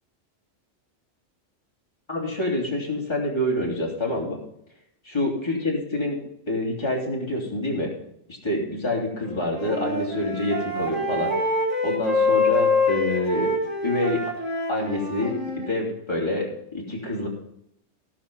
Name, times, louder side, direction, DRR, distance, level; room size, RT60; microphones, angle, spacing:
voice 1, 2.1-4.4 5.1-6.2 6.5-7.9 8.4-11.3 11.8-13.5 13.8-14.3 14.7-17.3, left 1 dB, 20° left, -3 dB, 3.0 m, -27 dB
Wind instrument woodwind instrument, 9.3-15.7, left 2 dB, 20° right, 3.3 m, -25 dB
17.0 x 5.9 x 5.4 m, 0.75 s
omnidirectional pair, 1.3 m